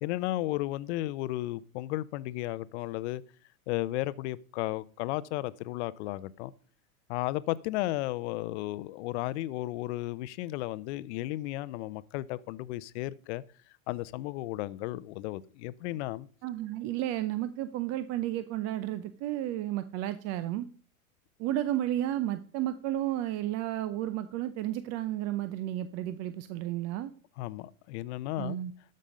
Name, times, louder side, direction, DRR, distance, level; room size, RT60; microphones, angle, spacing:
voice 1, 0.0-3.2 3.7-6.5 7.1-13.4 13.9-16.3 27.4-28.6, left 17 dB, 50° left, 0.7 m, -34 dB
voice 2, 16.4-20.7 21.4-27.1 28.4-28.7, right 13 dB, 35° right, 0.7 m, -32 dB
13.0 x 5.4 x 5.2 m
hypercardioid pair, 115°, 43 cm